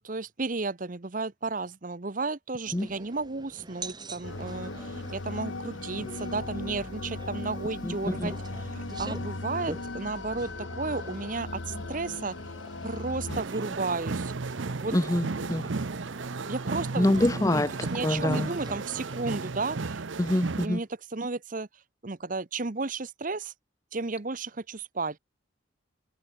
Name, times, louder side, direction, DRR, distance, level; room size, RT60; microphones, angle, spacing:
voice 1, 0.0-12.4 12.8-15.0 16.5-17.6 17.9-20.0 20.6-21.7 22.0-23.5 23.9-25.2, right 3 dB, 40° right, 0.9 m, -33 dB
sound 1, 2.6-19.2, right 2 dB, 20° right, 6.1 m, -46 dB
sound 2, 4.2-13.4, left 2 dB, 75° left, 1.4 m, -37 dB
voice 2, 7.8-8.3 14.9-15.7 17.0-18.5 20.2-20.8, left 1 dB, 15° left, 0.7 m, -26 dB
sound 3, 13.3-20.7, right 3 dB, 70° right, 0.8 m, -34 dB
head